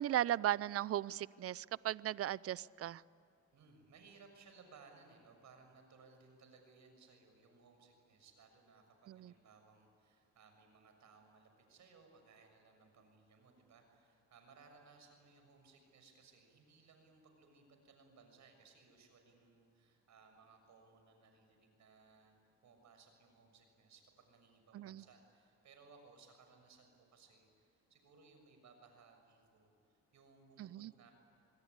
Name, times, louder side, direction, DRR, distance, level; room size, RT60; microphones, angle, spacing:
voice 1, 0.0-3.0 9.1-9.3 24.7-25.0 30.6-30.9, right 12 dB, 50° right, 21 dB, 0.5 m, -37 dB
voice 2, 3.5-22.3 22.6-31.1, right 4 dB, 70° right, 5 dB, 6.7 m, -63 dB
27.0 x 21.5 x 9.8 m, 2.6 s
cardioid pair, 90°, 30 cm